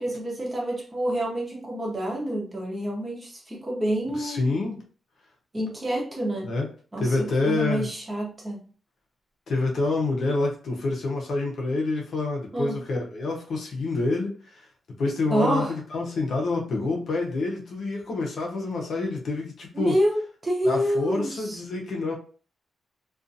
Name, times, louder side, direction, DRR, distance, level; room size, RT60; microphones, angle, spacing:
voice 1, 0.0-4.4 5.5-6.5 6.9-8.6 12.5-12.8 15.3-15.7 19.7-21.6, right 1 dB, 20° right, -2 dB, 0.7 m, -28 dB
voice 2, 4.2-4.8 6.4-6.7 7.0-7.9 9.5-14.7 15.0-20.0 20.6-22.1, left 3 dB, 55° left, -1 dB, 0.7 m, -27 dB
2.4 x 2.3 x 2.6 m, 0.40 s
wide cardioid pair, 170°, 0 cm